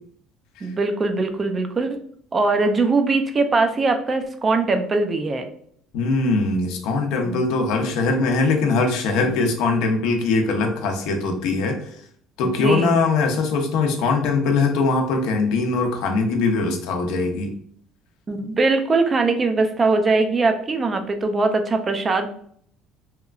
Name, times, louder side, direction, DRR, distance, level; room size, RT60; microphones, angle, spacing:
voice 1, 0.6-2.0 2.3-5.5 7.2-7.4 12.4-13.0 18.3-22.3, right 3 dB, 20° right, 6 dB, 0.4 m, -21 dB
voice 2, 5.9-11.9 12.4-17.5, left 3 dB, 75° left, 4 dB, 0.5 m, -21 dB
2.9 x 2.3 x 2.3 m, 0.62 s
cardioid pair, 145°, 0 cm